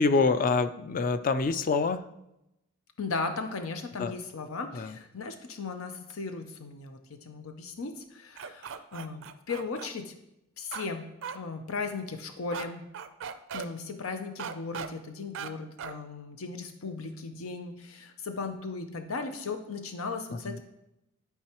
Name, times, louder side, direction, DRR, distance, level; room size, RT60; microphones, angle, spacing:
voice 1, 0.0-2.0 4.0-4.1 4.7-5.0 20.3-20.6, left 4 dB, 40° left, 11 dB, 0.4 m, -26 dB
voice 2, 3.0-10.1 10.6-11.0 11.3-12.8 13.5-20.6, left 4 dB, 90° left, 6 dB, 0.7 m, -37 dB
sound 1, 8.4-9.9 10.7-10.9 11.2-11.4 12.5-12.7 12.9-13.7 14.4-14.9 15.3-15.5 15.8-16.0, right 7 dB, 60° right, 0.4 m, -38 dB
11.5 x 4.6 x 3.0 m, 0.87 s
head